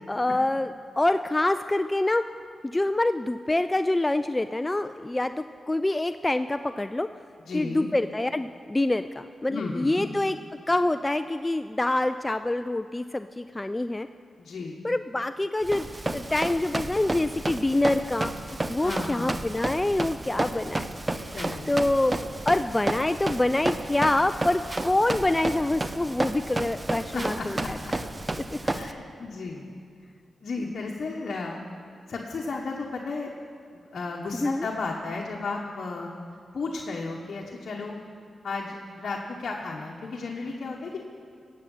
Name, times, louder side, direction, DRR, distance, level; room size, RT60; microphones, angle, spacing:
voice 1, 0.1-0.7 1.0-2.2 2.6-7.1 7.5-10.4 10.7-14.1 14.8-18.3 18.7-20.9 21.1-21.4 21.7-22.2 22.5-27.8 28.5-28.6 34.4-34.7, left 2 dB, 20° left, 10 dB, 0.3 m, -26 dB
voice 2, 7.4-7.9 9.5-10.1 14.4-14.8 18.8-19.3 21.3-21.7 27.1-27.9 28.6-29.7 30.4-31.6 32.1-33.3 33.7-36.1 36.5-38.0 38.4-41.0, left 3 dB, 65° left, -1 dB, 1.1 m, -34 dB
Run, 15.6-28.9, right 2 dB, 25° right, 0.6 m, -32 dB
17.0 x 7.7 x 5.5 m, 2.3 s
cardioid pair, 65°, 0 cm